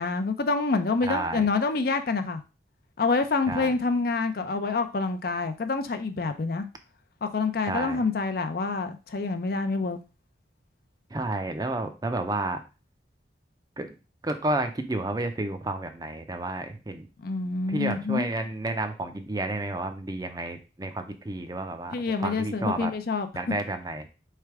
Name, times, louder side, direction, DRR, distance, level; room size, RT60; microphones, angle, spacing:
voice 1, 0.0-2.4 3.0-6.7 7.2-10.0 17.2-18.3 21.9-23.3, left 4 dB, 55° left, 8 dB, 0.5 m, -27 dB
voice 2, 1.0-1.4 3.5-3.7 7.7-8.0 11.1-12.6 13.8-13.9 14.2-17.1 17.7-21.9 22.2-22.9 23.4-24.1, right 2 dB, 20° right, 7 dB, 0.5 m, -31 dB
3.4 x 3.3 x 4.6 m, 0.31 s
head